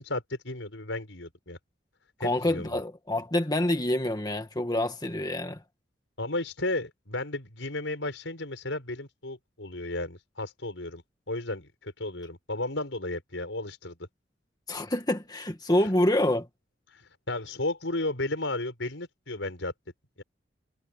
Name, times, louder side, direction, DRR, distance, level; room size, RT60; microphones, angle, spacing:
voice 1, 0.0-1.6 2.2-2.8 6.2-14.0 16.9-19.7 20.2-20.3, left 2 dB, 80° left, 5.3 m, -34 dB
voice 2, 2.2-5.6 14.7-16.5, left 1 dB, 20° left, 1.8 m, -27 dB
head